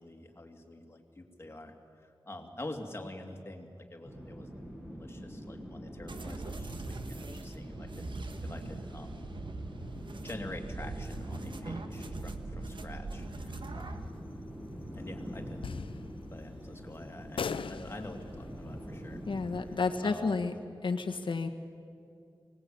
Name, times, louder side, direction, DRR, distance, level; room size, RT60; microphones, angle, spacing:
voice 1, 0.0-8.1 8.4-9.3 9.9-14.1 14.9-15.6 16.3-19.2 19.6-20.5, left 1 dB, 30° left, 3 dB, 2.5 m, -46 dB
sound 1, 4.0-19.6, equal, 20° right, 6.4 m, -45 dB
sound 2, 6.1-14.1, right 3 dB, 70° right, 1.5 m, -41 dB
sound 3, 13.1-20.4, left 6 dB, 85° left, 0.6 m, -44 dB
voice 2, 19.3-20.5 20.8-21.5, left 4 dB, 70° left, 5 dB, 1.6 m, -31 dB
24.5 x 19.0 x 8.7 m, 2.5 s
wide cardioid pair, 105°, 9 cm